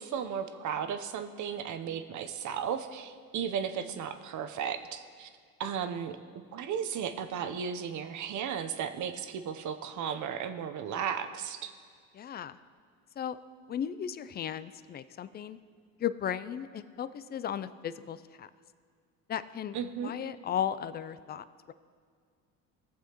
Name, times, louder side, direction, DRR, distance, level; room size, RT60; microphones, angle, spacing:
voice 1, 0.0-5.3 5.6-11.7 19.7-20.1, right 8 dB, 50° right, 10 dB, 0.8 m, -35 dB
voice 2, 12.1-12.6 13.2-13.4 13.7-15.6 16.0-18.5 19.3-19.8 20.0-21.7, left 9 dB, 25° left, 14 dB, 0.3 m, -35 dB
18.5 x 7.1 x 3.0 m, 2.1 s
supercardioid pair, 100°, 38 cm